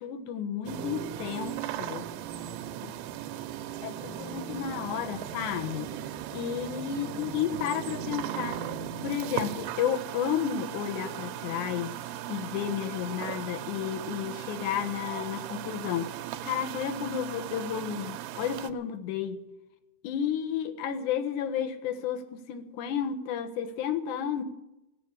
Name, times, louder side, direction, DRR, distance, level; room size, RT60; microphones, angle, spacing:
voice 1, 0.0-2.1 3.8-5.9 6.3-8.6 9.0-12.0 12.3-16.1 16.4-19.4 20.0-24.4, left 9 dB, 65° left, 6 dB, 2.0 m, -32 dB
sound 1, 0.7-18.7, right 11 dB, 80° right, 2.9 m, -37 dB
16.5 x 9.9 x 8.3 m, 0.94 s
omnidirectional pair, 5.3 m